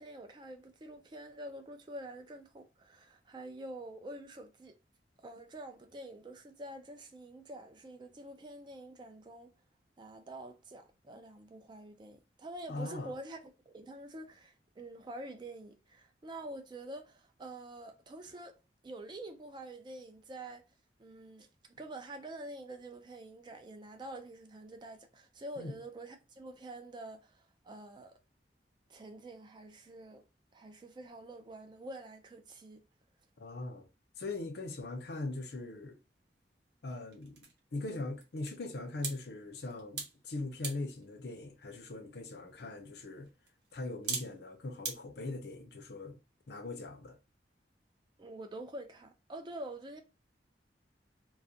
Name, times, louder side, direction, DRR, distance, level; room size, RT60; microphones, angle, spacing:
voice 1, 0.0-4.8 5.2-9.5 10.0-13.4 13.7-18.6 18.8-20.6 21.0-21.5 21.8-28.1 28.9-30.2 30.5-32.8 48.2-50.0, right 1 dB, 25° right, 0.3 m, -47 dB
voice 2, 12.7-13.1 25.6-25.8 33.4-33.9 34.2-36.0 36.8-37.4 37.7-43.3 43.7-46.2 46.5-47.2, left 2 dB, 65° left, 0.5 m, -40 dB
sound 1, 35.6-45.0, right 4 dB, 70° right, 0.8 m, -46 dB
2.3 x 2.1 x 2.6 m
head